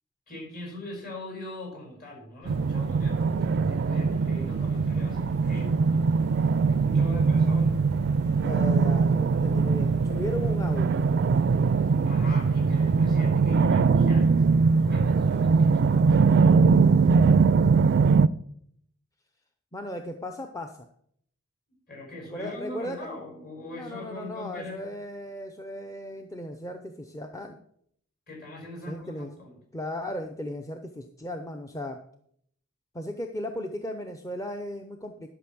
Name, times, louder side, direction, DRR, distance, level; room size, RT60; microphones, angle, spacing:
voice 1, 0.3-6.0 6.7-7.8 12.0-16.8 21.9-24.9 28.3-29.6, left 1 dB, 45° left, -1 dB, 5.3 m, -41 dB
sound 1, 2.4-13.2, equal, 85° left, 1.8 m, -46 dB
sound 2, 2.5-18.3, right 5 dB, 50° right, 0.3 m, -22 dB
voice 2, 8.4-11.1 19.7-20.9 22.3-23.0 23.7-27.6 28.9-29.3 29.7-32.0 32.9-35.3, left 1 dB, 15° left, 5 dB, 0.6 m, -36 dB
12.0 x 5.9 x 6.1 m, 0.68 s
head